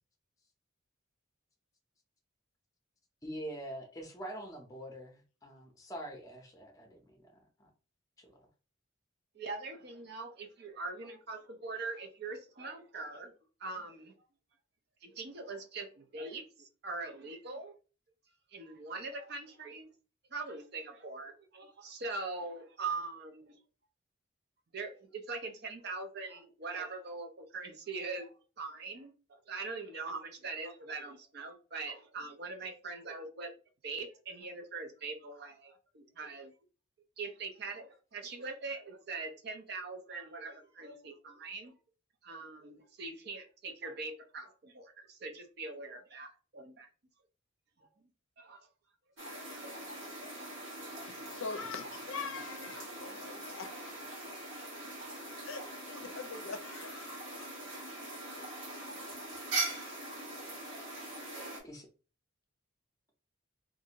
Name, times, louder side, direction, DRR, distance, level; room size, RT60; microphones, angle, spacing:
voice 1, 3.2-7.7 8.2-8.5 59.6-59.7 61.6-61.9, right 1 dB, 15° left, 0.6 m, -45 dB
voice 2, 9.3-13.3 13.6-14.1 15.0-17.7 18.5-19.9 20.3-23.6 24.7-33.5 33.8-36.5 37.2-41.7 42.2-46.9 47.8-47.9 48.4-48.7, right 3 dB, 50° right, 0.6 m, -42 dB
sound 1, 49.2-61.6, right 2 dB, 65° right, 1.3 m, -42 dB
voice 3, 51.1-54.0 55.4-57.5, left 4 dB, 75° left, 0.5 m, -43 dB
2.6 x 2.5 x 2.8 m
head